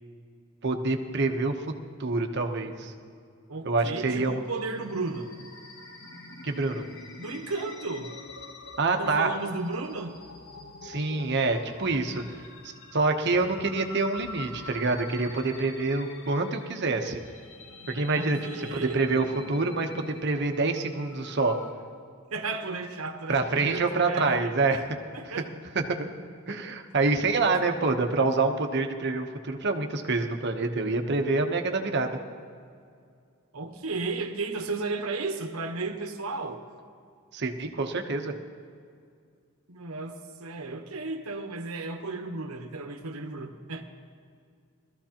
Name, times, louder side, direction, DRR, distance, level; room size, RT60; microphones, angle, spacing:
voice 1, 0.6-1.5 2.0-2.9 3.6-4.4 6.4-6.8 8.8-9.3 10.8-12.2 12.9-17.2 17.9-21.6 23.3-24.8 25.7-26.1 26.5-32.2 37.3-38.3, right 3 dB, 55° right, 5 dB, 0.9 m, -26 dB
voice 2, 3.5-5.3 7.2-8.1 8.9-10.2 18.1-19.0 22.3-24.8 25.1-25.5 33.5-36.6 39.7-43.8, right 3 dB, 80° right, 5 dB, 1.0 m, -34 dB
sound 1, 4.4-21.7, left 2 dB, 65° left, 1.2 m, -46 dB
18.5 x 14.0 x 2.9 m, 2.3 s
head